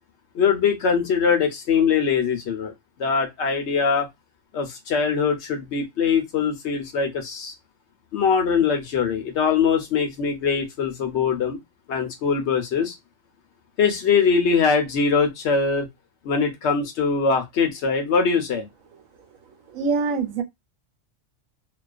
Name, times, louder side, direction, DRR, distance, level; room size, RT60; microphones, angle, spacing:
voice 1, 0.3-2.7 3.0-4.1 4.5-7.5 8.1-11.6 11.9-12.9 13.8-15.9 16.2-18.7, left 5 dB, 65° left, 0.8 m, -22 dB
voice 2, 19.7-20.4, right 4 dB, 80° right, 1.0 m, -24 dB
2.3 x 2.3 x 2.3 m
omnidirectional pair, 1.4 m